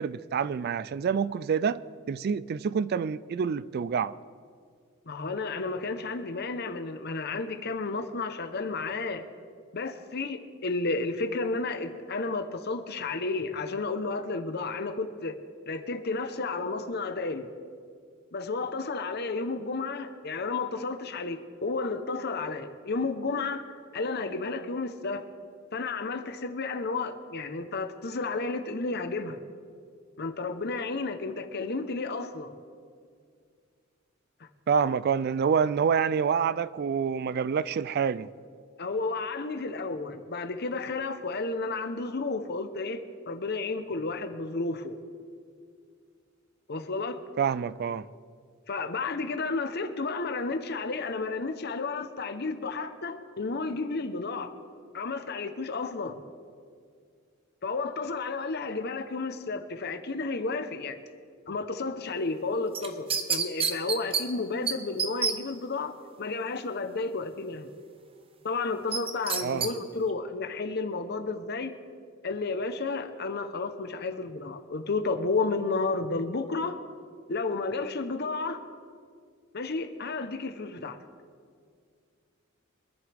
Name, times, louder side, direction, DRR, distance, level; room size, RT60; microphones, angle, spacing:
voice 1, 0.0-1.8 2.1-4.2 34.7-38.3 47.4-48.1 69.4-69.7, right 6 dB, 50° right, 0.3 m, -27 dB
voice 2, 5.1-9.2 9.7-15.4 15.7-17.5 18.3-23.7 23.9-25.3 25.7-29.4 30.2-32.5 34.4-34.5 38.8-44.9 46.7-47.2 48.7-54.5 54.9-56.2 57.6-61.0 61.5-67.7 68.4-71.7 72.2-76.8 77.3-78.6 79.5-81.0, left 3 dB, 50° left, 0.9 m, -32 dB
sound 1, 62.7-64.2 64.7-64.8 65.0-65.3 68.9-69.7 70.1-70.2, right 6 dB, 30° right, 0.8 m, -27 dB
24.0 x 11.0 x 3.5 m
head